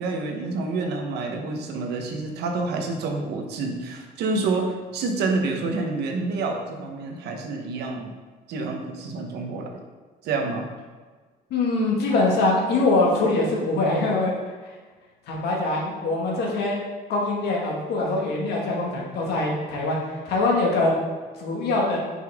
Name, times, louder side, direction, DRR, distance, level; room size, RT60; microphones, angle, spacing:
voice 1, 0.0-8.1 8.5-9.8 10.2-10.7, right 3 dB, 75° right, 3 dB, 1.1 m, -28 dB
voice 2, 11.5-14.3 15.3-16.8 17.1-20.0 20.3-20.9 21.4-22.0, left 2 dB, 75° left, -2 dB, 1.9 m, -23 dB
6.0 x 5.7 x 3.6 m, 1.4 s
cardioid pair, 110°, 17 cm